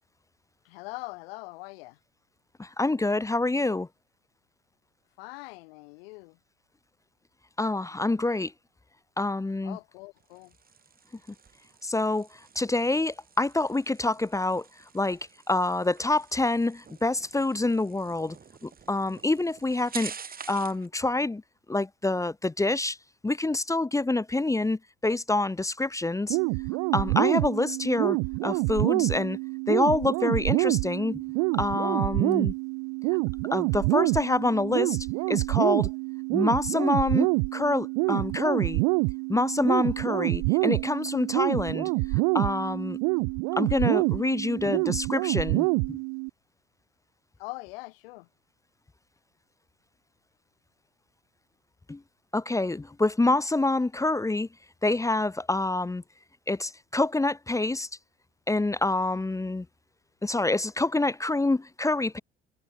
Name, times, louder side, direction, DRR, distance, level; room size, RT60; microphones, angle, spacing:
voice 1, 0.6-2.0 5.2-6.4 9.6-10.5 47.4-48.3, left 26 dB, 70° left, 4.0 m, -42 dB
voice 2, 2.6-3.9 7.6-8.5 9.2-9.8 11.8-14.7 14.9-15.2 15.5-18.4 18.6-20.1 20.5-21.4 21.7-23.0 23.2-26.4 26.9-29.4 29.7-31.2 31.5-32.5 33.5-35.9 36.3-38.8 39.3-43.0 43.6-46.0 51.9-52.0 52.3-54.5 54.8-56.0 56.5-57.9 58.5-59.7 60.2-62.2, left 2 dB, 10° left, 0.9 m, -27 dB
sound 1, 10.2-20.9, right 6 dB, 30° right, 1.9 m, -47 dB
sound 2, 26.3-46.3, right 38 dB, 65° right, 0.8 m, -27 dB
hypercardioid pair, 65°, 30 cm